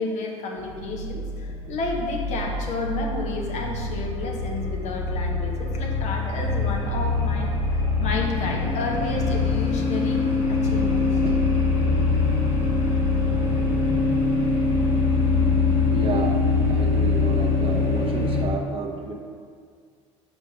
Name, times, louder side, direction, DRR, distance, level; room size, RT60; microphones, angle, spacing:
voice 1, 0.0-11.0, left 3 dB, 45° left, 0 dB, 1.0 m, -31 dB
sound 1, 0.6-18.4, left 3 dB, 65° left, 1.3 m, -23 dB
voice 2, 15.9-16.4 16.7-19.1, right 4 dB, 35° right, 3 dB, 0.7 m, -31 dB
6.0 x 5.1 x 3.6 m, 2.1 s
figure-of-eight pair, 60°, 16 cm